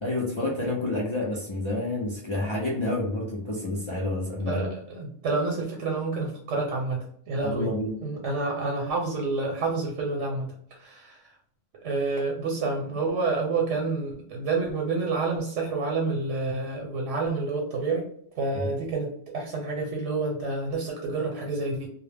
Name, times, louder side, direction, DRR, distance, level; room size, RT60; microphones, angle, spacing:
voice 1, 0.0-4.7 7.4-8.0 18.5-18.7, left 2 dB, 55° left, -5 dB, 0.3 m, -29 dB
voice 2, 4.5-7.7 8.0-10.5 10.8-11.2 11.8-18.1 18.4-21.9, right 3 dB, 80° right, 0 dB, 1.0 m, -28 dB
2.2 x 2.0 x 3.3 m, 0.65 s
omnidirectional pair, 1.2 m